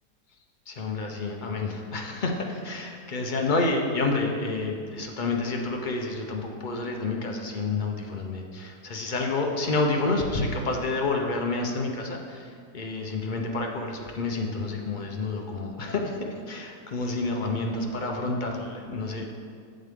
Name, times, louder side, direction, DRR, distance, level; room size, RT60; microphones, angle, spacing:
voice 1, 0.7-16.2 16.5-19.3, left 3 dB, 50° left, 1 dB, 0.6 m, -29 dB
8.5 x 7.5 x 3.6 m, 2.1 s
omnidirectional pair, 1.7 m